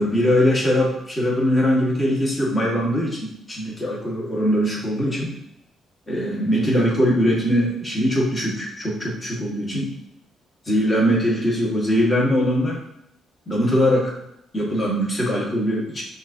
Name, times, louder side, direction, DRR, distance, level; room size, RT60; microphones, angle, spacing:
voice 1, 0.0-5.3 6.1-9.9 10.6-12.8 13.5-14.1 14.5-16.0, equal, 25° left, -4 dB, 1.5 m, -21 dB
5.8 x 2.7 x 2.7 m, 0.74 s
cardioid pair, 90°, 0 cm